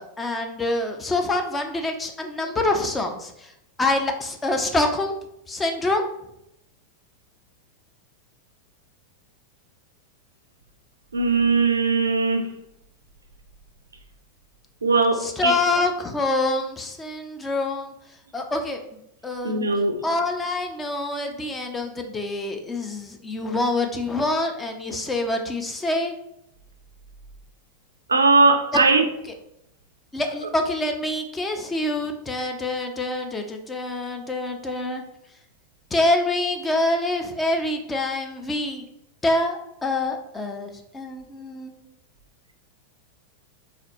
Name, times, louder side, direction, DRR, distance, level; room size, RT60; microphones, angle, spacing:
voice 1, 0.0-3.5 3.8-5.2 5.5-6.0 15.1-17.9 18.3-18.8 19.2-19.6 20.0-26.1 28.7-28.8 30.1-35.0 35.9-38.8 39.2-41.7, left 2 dB, 15° left, 0.5 m, -26 dB
voice 2, 11.1-12.5 14.8-15.5 19.4-20.0 28.1-29.0, right 3 dB, 75° right, 0.5 m, -19 dB
4.1 x 3.1 x 2.9 m
figure-of-eight pair, 90°, 0 cm